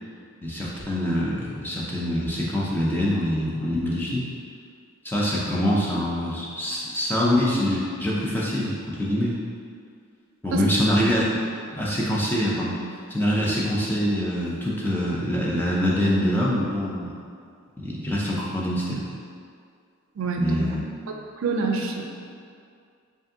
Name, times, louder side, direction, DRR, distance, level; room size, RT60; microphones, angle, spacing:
voice 1, 0.4-4.3 5.0-9.4 10.4-11.2 11.7-12.8 13.1-17.1 17.8-19.0 20.4-20.8, equal, 10° left, -6 dB, 0.4 m, -24 dB
voice 2, 20.2-20.5 21.4-22.1, right 4 dB, 70° right, 2 dB, 0.4 m, -26 dB
5.0 x 2.5 x 2.7 m, 2.2 s
head